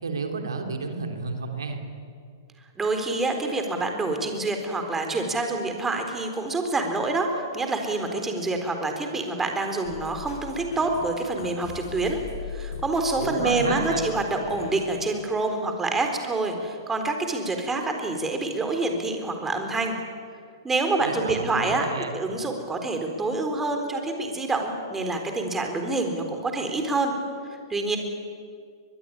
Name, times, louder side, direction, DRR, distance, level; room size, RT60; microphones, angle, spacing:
voice 1, 0.0-1.8 13.2-14.1 21.0-22.1, right 4 dB, 90° right, 4 dB, 3.4 m, -31 dB
voice 2, 2.8-12.2 12.5-19.9 20.6-21.9 22.1-27.1 27.5-28.0, right 2 dB, 10° right, 4 dB, 4.0 m, -27 dB
sound 1, 9.8-15.0, left 4 dB, 65° left, 6.8 m, -38 dB
23.0 x 22.0 x 10.0 m, 2.2 s
hypercardioid pair, 125°, 2 cm